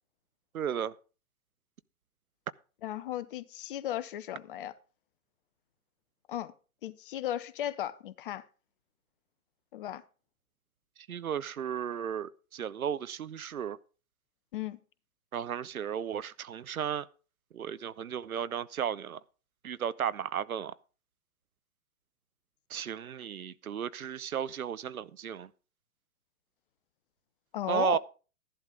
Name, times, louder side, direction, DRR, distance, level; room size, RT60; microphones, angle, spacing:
voice 1, 0.5-0.9 11.1-13.8 15.3-17.1 17.5-19.2 19.6-20.7 22.7-25.5 27.7-28.0, right 8 dB, 70° right, 0.8 m, -34 dB
voice 2, 2.8-4.7 6.3-6.5 6.8-8.4 9.7-10.0 14.5-14.8 27.5-28.0, left 12 dB, 35° left, 0.8 m, -35 dB
13.0 x 11.5 x 3.7 m
figure-of-eight pair, 120°, 44 cm